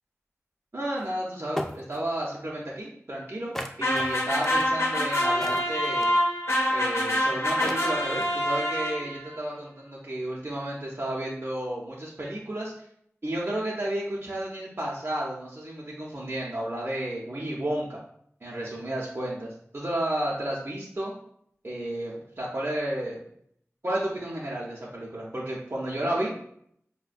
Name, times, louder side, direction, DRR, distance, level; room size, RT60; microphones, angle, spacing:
voice 1, 0.7-6.1 6.7-12.9 13.2-18.0 18.4-21.1 21.6-23.2 23.8-26.3, right 1 dB, 50° right, -5 dB, 0.6 m, -32 dB
sound 1, 1.0-1.1 1.6-2.0 3.6-6.2 7.2-7.3 7.6-8.4, equal, 5° left, 0.4 m, -35 dB
sound 2, 3.8-9.3, equal, 70° left, 0.8 m, -26 dB
4.6 x 2.1 x 2.4 m, 0.68 s
wide cardioid pair, 50°, 5 cm